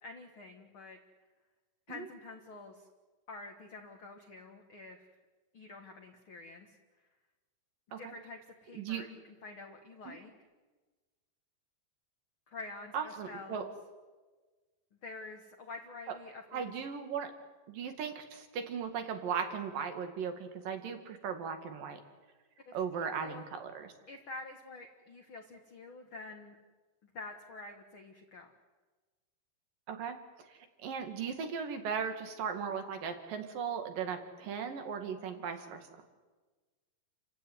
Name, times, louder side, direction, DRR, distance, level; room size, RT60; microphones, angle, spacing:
voice 1, 0.0-1.0 1.9-2.9 3.3-5.1 5.5-6.8 8.0-10.3 12.5-13.7 15.0-16.7 22.7-23.5 24.1-26.6 27.0-28.5, left 3 dB, 45° left, 3 dB, 1.8 m, -48 dB
voice 2, 12.9-13.7 16.5-17.3 17.7-22.0 22.7-23.9 29.9-30.2 30.5-35.9, right 6 dB, 65° right, 6 dB, 3.8 m, -37 dB
29.5 x 16.0 x 9.5 m, 1.3 s
omnidirectional pair, 4.3 m